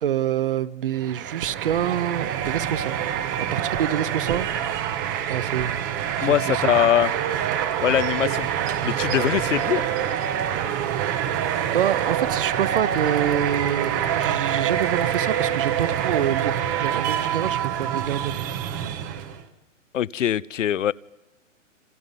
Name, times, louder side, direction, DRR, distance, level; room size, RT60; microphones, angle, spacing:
voice 1, 0.0-4.5 5.3-5.7 6.2-6.6 8.2-8.3 11.7-18.5, right 10 dB, 45° right, 0.8 m, -26 dB
sound 1, 0.9-19.4, right 9 dB, 15° right, 0.8 m, -26 dB
voice 2, 6.2-7.1 7.8-8.5 8.8-10.0 19.9-20.9, left 10 dB, 70° left, 0.8 m, -22 dB
28.0 x 27.5 x 5.4 m
hypercardioid pair, 165°, 38 cm